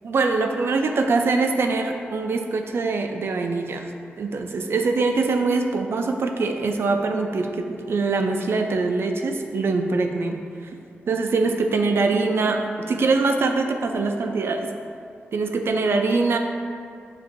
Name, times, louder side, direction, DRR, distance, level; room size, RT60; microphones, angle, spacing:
voice 1, 0.0-3.9 4.2-10.7 11.1-14.7 15.3-16.4, right 3 dB, 65° right, 4 dB, 0.4 m, -23 dB
7.3 x 2.5 x 2.5 m, 2.3 s
cardioid pair, 85°, 4 cm